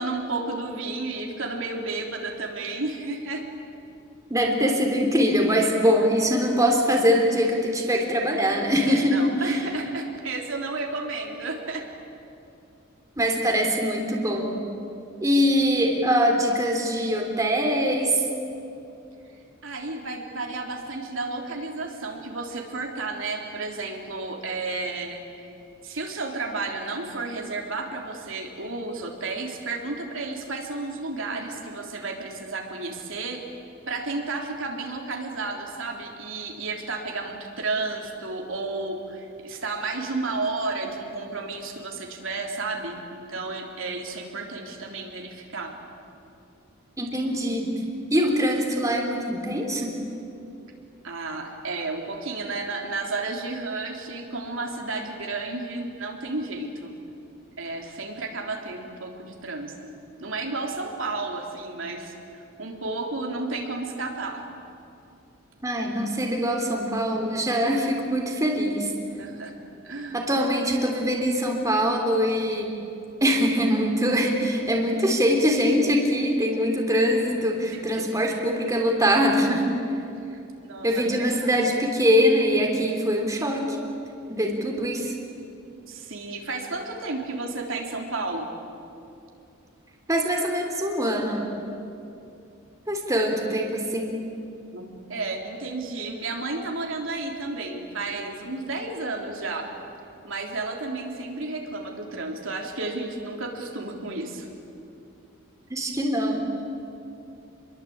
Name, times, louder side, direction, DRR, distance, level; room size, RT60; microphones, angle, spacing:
voice 1, 0.0-3.4 8.8-11.9 19.6-25.5 25.8-33.4 33.9-45.7 51.0-56.9 57.6-59.9 60.2-64.4 69.2-69.5 69.8-70.2 77.7-78.1 80.2-81.6 85.9-88.5 91.1-91.2 94.7-99.7 100.2-104.5, right 3 dB, 65° right, 1 dB, 3.5 m, -32 dB
voice 2, 4.3-9.6 13.2-14.5 15.2-18.2 47.0-47.7 48.1-50.0 65.6-68.9 70.1-72.7 73.2-79.7 80.8-83.8 84.3-85.1 90.1-91.5 92.9-94.2 105.7-106.4, equal, 15° right, 1 dB, 3.3 m, -23 dB
28.5 x 22.5 x 8.8 m, 2.7 s
head